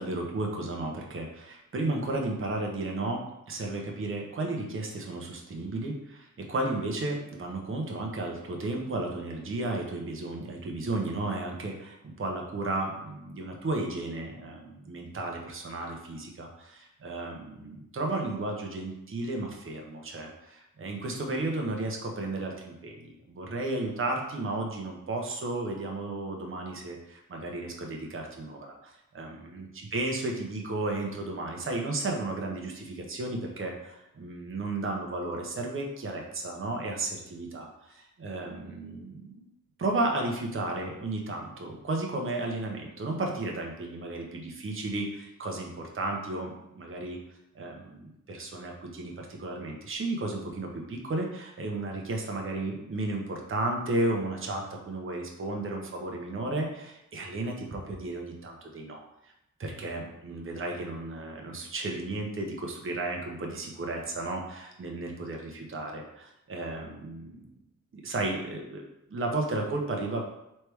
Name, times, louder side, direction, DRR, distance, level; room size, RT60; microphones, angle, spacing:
voice 1, 0.0-29.7 29.9-39.5 39.8-47.2 47.5-59.3 59.6-67.5 67.9-68.8 69.1-70.2, right 2 dB, 40° right, 1 dB, 0.8 m, -33 dB
3.3 x 3.2 x 4.6 m, 0.84 s
wide cardioid pair, 125°, 32 cm